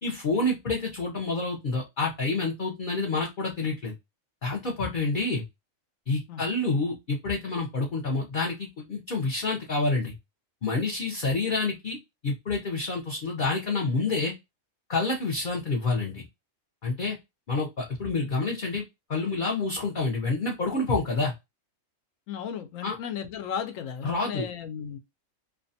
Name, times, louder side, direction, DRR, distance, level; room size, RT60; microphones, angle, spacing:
voice 1, 0.0-3.9 4.4-5.4 6.1-10.1 10.6-12.0 12.2-14.3 14.9-16.2 16.8-17.2 17.5-18.8 19.1-21.3 22.8-23.0 24.0-24.5, left 3 dB, 50° left, 0.7 m, -28 dB
voice 2, 22.3-25.0, left 7 dB, 80° left, 1.0 m, -35 dB
2.6 x 2.2 x 2.6 m
omnidirectional pair, 1.4 m